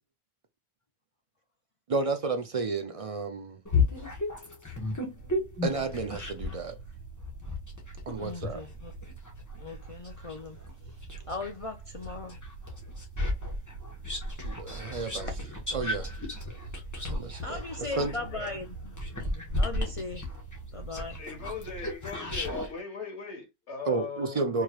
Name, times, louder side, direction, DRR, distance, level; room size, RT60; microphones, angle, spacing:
voice 1, 1.9-3.6 5.6-6.8 8.1-8.6 14.4-15.3 15.7-16.1 17.1-18.1 23.9-24.6, right 4 dB, 55° right, 0.4 m, -31 dB
sound 1, 3.7-6.6 7.2-11.5 12.0-22.7, left 3 dB, 15° left, 1.1 m, -33 dB
sound 2, 5.1-21.9, right 4 dB, 85° right, 1.0 m, -45 dB
voice 2, 8.1-8.9 9.5-10.6 11.3-12.4 15.2-15.5 17.4-20.3 20.7-21.2, left 3 dB, 55° left, 0.4 m, -39 dB
voice 3, 17.9-18.5 21.2-24.6, left 5 dB, 80° left, 1.7 m, -40 dB
4.7 x 3.1 x 2.3 m
omnidirectional pair, 1.2 m